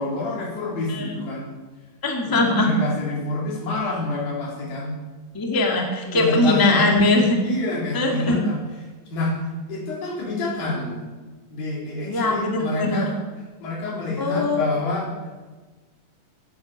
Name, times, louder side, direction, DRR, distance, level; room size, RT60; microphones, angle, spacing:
voice 1, 0.0-1.5 2.3-5.0 6.1-7.0 7.4-8.6 9.1-9.4 9.7-11.0 11.5-13.2 13.6-15.1, left 2 dB, 80° left, -2 dB, 5.2 m, -28 dB
voice 2, 2.0-2.7 5.3-7.4 7.9-8.4 12.1-13.0 14.2-14.6, left 2 dB, 10° left, 1 dB, 1.3 m, -21 dB
13.0 x 10.5 x 8.2 m, 1.3 s
omnidirectional pair, 4.0 m